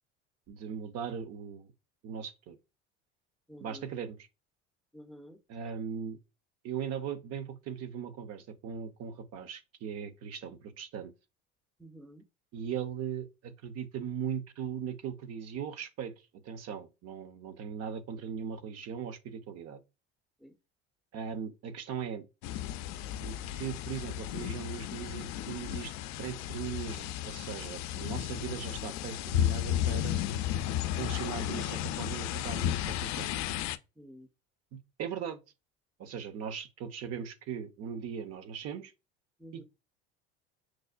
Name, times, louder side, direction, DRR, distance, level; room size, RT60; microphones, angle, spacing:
voice 1, 0.5-1.7 2.0-2.6 3.6-4.2 5.5-6.2 6.6-11.1 12.5-16.1 16.4-19.8 21.1-22.2 23.2-25.9 26.2-30.2 31.0-33.4 34.7-35.4 36.0-38.9 39.5-39.6, right 7 dB, 50° right, 0.7 m, -39 dB
voice 2, 3.5-3.8 4.9-5.4 11.8-12.2 20.4-20.5 34.0-34.3 39.4-39.6, equal, ahead, 0.5 m, -50 dB
sound 1, 22.4-33.8, left 12 dB, 55° left, 0.4 m, -34 dB
6.1 x 2.1 x 2.4 m
supercardioid pair, 90°, 33 cm